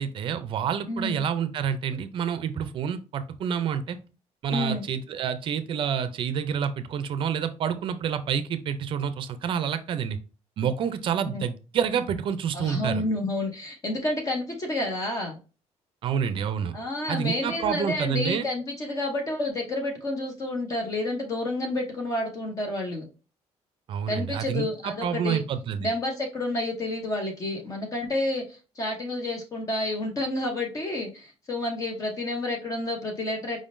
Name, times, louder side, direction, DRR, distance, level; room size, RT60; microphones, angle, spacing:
voice 1, 0.0-4.0 4.4-10.2 10.6-13.0 16.0-16.8 17.1-18.4 23.9-25.9, right 8 dB, 50° right, 11 dB, 0.5 m, -28 dB
voice 2, 0.9-1.2 4.5-4.8 11.3-11.4 12.5-15.4 16.7-23.1 24.1-25.4 25.8-33.6, left 1 dB, 30° left, 2 dB, 0.8 m, -30 dB
5.0 x 3.6 x 2.6 m, 0.33 s
cardioid pair, 175°, 12 cm